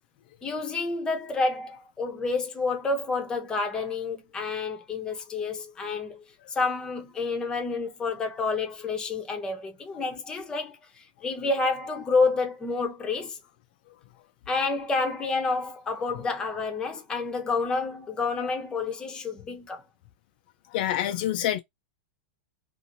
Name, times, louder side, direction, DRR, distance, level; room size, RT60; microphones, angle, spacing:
voice 1, 0.4-13.4 14.5-19.8, left 3 dB, 15° left, 0.7 m, -29 dB
voice 2, 20.7-21.6, left 12 dB, 55° left, 0.3 m, -26 dB
2.8 x 2.5 x 2.6 m
supercardioid pair, 155°, 6 cm